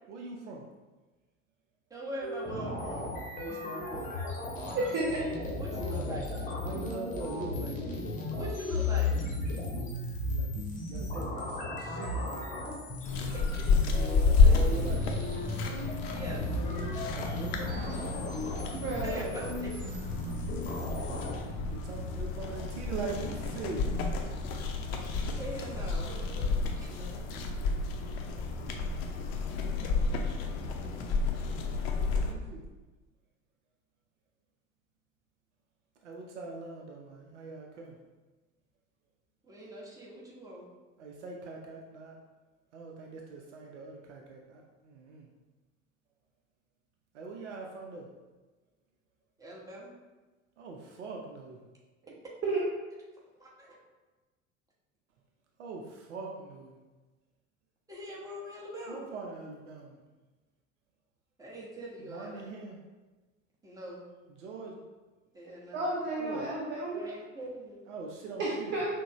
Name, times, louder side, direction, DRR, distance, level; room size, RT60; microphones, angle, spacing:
voice 1, 0.1-0.7 3.4-4.3 5.7-6.2 6.6-8.0 10.2-12.6 14.5-15.0 17.1-17.7 21.6-23.9 26.5-26.6 26.9-27.4 32.1-32.6 36.0-38.0 41.0-42.2 42.7-45.3 47.1-48.1 50.6-51.6 55.6-56.8 58.9-60.0 62.0-62.8 64.4-64.8 66.2-66.4 67.9-68.7, right 3 dB, 65° right, 0 dB, 0.6 m, -42 dB
voice 2, 1.9-3.1 5.6-6.3 8.4-9.1 13.3-14.6 16.1-16.4 19.0-19.8 25.4-26.5 39.4-40.6 49.4-49.9 53.4-53.8 57.9-59.1 61.4-62.5 63.6-64.0 65.3-65.9 66.9-67.8, right 1 dB, 10° right, -5 dB, 1.1 m, -42 dB
sound 1, 2.2-21.3, left 2 dB, 20° left, 1.0 m, -35 dB
voice 3, 4.7-5.2 18.7-19.2 52.4-52.6 65.7-67.0 68.4-68.9, right 2 dB, 30° right, -4 dB, 0.7 m, -31 dB
sound 2, 13.0-32.3, left 4 dB, 50° left, 0.6 m, -30 dB
5.9 x 2.2 x 2.9 m, 1.2 s
figure-of-eight pair, 70°, 39 cm